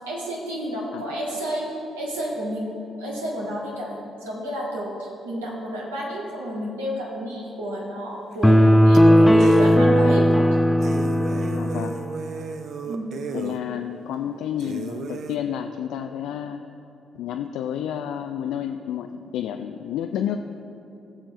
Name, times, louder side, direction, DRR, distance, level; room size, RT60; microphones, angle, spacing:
voice 1, 0.1-10.6 12.8-13.0, equal, 75° right, -5 dB, 1.8 m, -31 dB
sound 1, 8.3-8.7 8.9-9.0 9.4-9.8 10.3-10.4 10.8-13.6 14.1-14.2 14.6-15.4, right 5 dB, 55° right, 0.6 m, -34 dB
sound 2, 8.4-12.0, equal, 5° left, 0.5 m, -16 dB
voice 2, 11.5-12.0 13.3-16.6 17.1-20.4, left 9 dB, 60° left, 6 dB, 0.3 m, -30 dB
18.5 x 7.3 x 3.2 m, 3.0 s
figure-of-eight pair, 40°, 0 cm